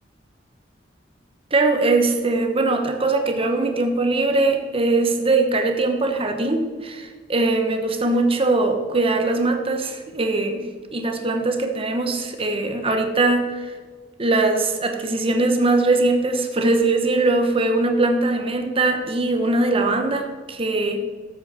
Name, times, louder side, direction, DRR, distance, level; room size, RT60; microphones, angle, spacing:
voice 1, 1.5-13.7 14.2-21.0, right 2 dB, 30° right, 5 dB, 1.2 m, -21 dB
13.5 x 8.1 x 4.3 m, 1.5 s
head